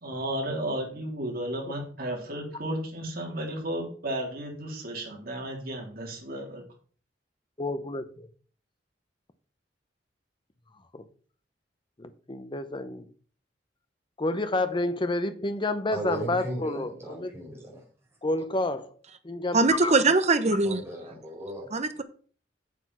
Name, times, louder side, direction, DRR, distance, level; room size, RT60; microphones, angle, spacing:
voice 1, 0.0-6.6, right 1 dB, 55° right, 3.6 m, -33 dB
voice 2, 7.6-8.3 10.9-11.0 12.0-13.1 14.2-17.3 18.2-18.9 19.2-19.9, left 2 dB, 25° left, 0.8 m, -29 dB
voice 3, 15.9-17.8 20.6-21.7, right 1 dB, 15° right, 4.9 m, -37 dB
voice 4, 19.5-20.8 21.7-22.0, right 3 dB, 40° right, 0.9 m, -22 dB
8.2 x 7.1 x 6.0 m
head